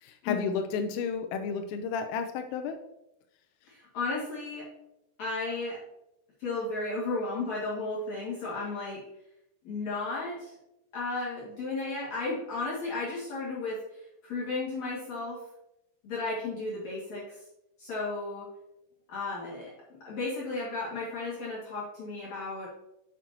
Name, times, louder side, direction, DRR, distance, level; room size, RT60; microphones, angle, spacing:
voice 1, 0.0-2.8, left 5 dB, 90° left, 6 dB, 3.2 m, -32 dB
voice 2, 3.7-4.7 5.2-5.8 6.4-9.0 9.6-10.5 10.9-15.4 16.0-17.4 17.8-18.5 19.1-22.7, left 3 dB, 50° left, -8 dB, 2.3 m, -34 dB
7.5 x 7.4 x 2.8 m, 0.86 s
omnidirectional pair, 5.7 m